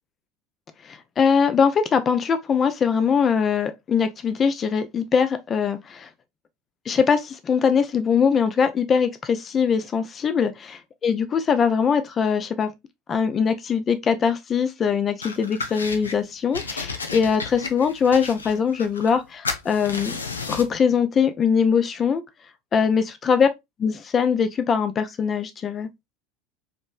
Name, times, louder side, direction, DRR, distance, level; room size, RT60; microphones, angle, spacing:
voice 1, 0.9-6.1 6.9-12.7 13.1-20.2 20.5-22.2 22.7-23.5 23.8-25.9, left 6 dB, 30° left, 0.5 m, -22 dB
sound 1, 15.2-16.2 16.5-19.2 19.4-20.8, left 4 dB, 75° left, 0.6 m, -33 dB
5.1 x 3.1 x 2.2 m
figure-of-eight pair, 75°, 0 cm